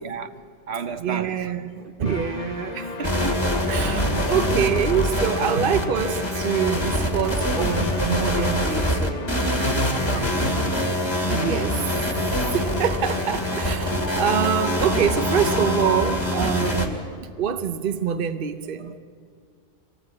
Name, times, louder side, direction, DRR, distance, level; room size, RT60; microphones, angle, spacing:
voice 1, 0.0-1.6 4.1-4.2 10.0-10.3 12.0-12.1 16.6-17.3 18.8-19.0, right 5 dB, 70° right, 1.2 m, -35 dB
voice 2, 1.0-9.3 11.3-11.9 12.5-17.0 17.4-18.9, right 8 dB, 55° right, 1.0 m, -25 dB
sound 1, 2.0-16.4, left 5 dB, 40° left, 0.9 m, -34 dB
sound 2, 3.0-16.9, equal, 25° left, 2.4 m, -25 dB
sound 3, 10.5-16.2, left 2 dB, 70° left, 2.2 m, -35 dB
25.5 x 18.0 x 8.5 m
omnidirectional pair, 1.1 m